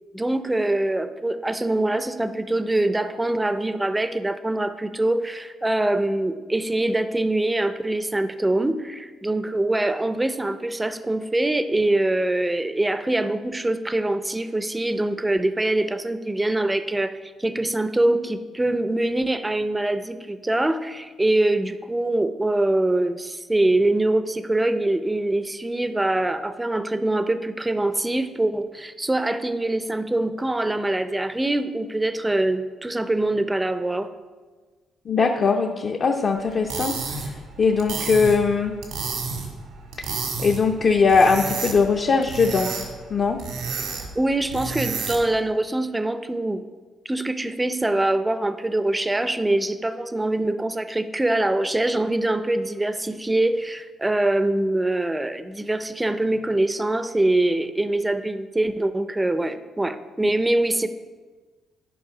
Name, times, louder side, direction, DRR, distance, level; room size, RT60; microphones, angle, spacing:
voice 1, 0.1-34.1 44.2-46.7 47.1-60.9, right 1 dB, 10° right, 11 dB, 0.4 m, -24 dB
voice 2, 35.1-38.7 40.4-42.7 43.1-43.4, left 5 dB, 45° left, 2 dB, 0.6 m, -20 dB
sound 1, 36.5-45.4, right 5 dB, 90° right, 1.6 m, -31 dB
10.0 x 5.1 x 4.8 m, 1.4 s
cardioid pair, 125°, 0 cm